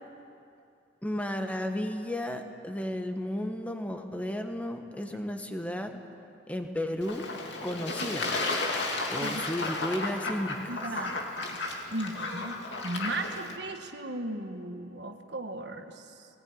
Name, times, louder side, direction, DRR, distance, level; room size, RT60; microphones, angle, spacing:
voice 1, 1.0-6.0 6.5-7.3 7.6-8.4 9.1-10.8, left 1 dB, 10° left, 5 dB, 1.3 m, -33 dB
Fowl / Bird / Water, 7.0-13.6, left 2 dB, 70° left, 2.6 m, -33 dB
voice 2, 9.2-9.7 10.4-11.6 11.9-12.6 12.8-16.3, right 2 dB, 60° right, 5 dB, 1.5 m, -37 dB
19.5 x 18.5 x 9.5 m, 2.6 s
head